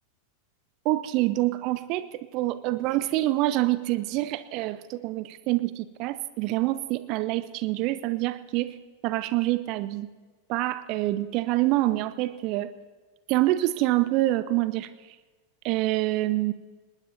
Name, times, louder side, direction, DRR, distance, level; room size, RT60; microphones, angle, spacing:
voice 1, 0.8-8.7 9.0-10.1 10.5-12.7 13.3-14.9 15.6-16.5, right 17 dB, 40° right, 14 dB, 0.7 m, -26 dB
20.0 x 19.5 x 2.8 m, 1.3 s
figure-of-eight pair, 90°, 0 cm